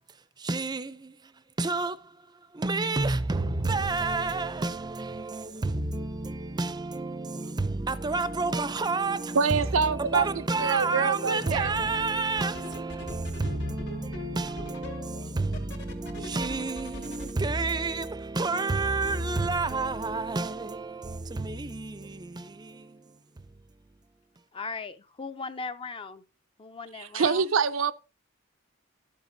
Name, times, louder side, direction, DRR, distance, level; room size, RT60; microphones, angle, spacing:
voice 1, 0.1-2.0 2.5-23.8, right 3 dB, 20° right, 0.5 m, -30 dB
voice 2, 9.4-10.3 10.6-11.7 27.1-27.9, right 5 dB, 75° right, 0.5 m, -25 dB
sound 1, 11.6-12.0 12.4-17.3, left 2 dB, 60° left, 2.4 m, -41 dB
voice 3, 24.5-26.2 26.6-27.5, left 4 dB, 25° left, 0.5 m, -38 dB
13.0 x 7.4 x 2.7 m
head